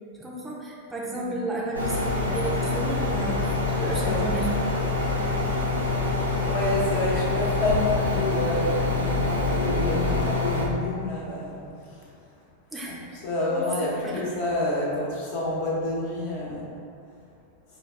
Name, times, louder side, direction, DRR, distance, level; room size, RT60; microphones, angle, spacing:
voice 1, 0.2-4.5 12.7-13.0 13.5-14.4, right 2 dB, 15° right, -4 dB, 0.5 m, -33 dB
sound 1, 1.7-10.7, left 3 dB, 85° left, 0.6 m, -25 dB
voice 2, 3.9-4.2 6.5-11.9 12.8-12.9 13.2-16.6, left 1 dB, 50° left, -5 dB, 1.0 m, -28 dB
4.5 x 2.2 x 3.2 m, 2.5 s
figure-of-eight pair, 90°, 0 cm